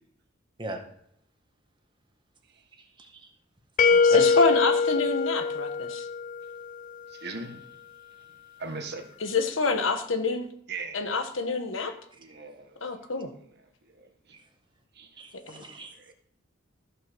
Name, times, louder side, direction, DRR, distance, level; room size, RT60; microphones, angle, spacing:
voice 1, 2.8-3.3 3.9-4.3 12.3-12.4 14.3-14.4 15.2-16.1, right 1 dB, 25° right, 1.7 m, -39 dB
sound 1, 3.8-6.6, left 5 dB, 45° left, 0.4 m, -23 dB
voice 2, 4.0-6.1 9.2-10.5 10.9-11.9 12.8-13.3 15.5-15.7, left 4 dB, 80° left, 1.4 m, -27 dB
voice 3, 7.1-7.7 8.6-9.1 10.7-11.0 12.2-12.8 13.9-14.1 14.9-15.1 15.9-16.1, right 3 dB, 60° right, 1.5 m, -39 dB
14.0 x 5.6 x 6.3 m
head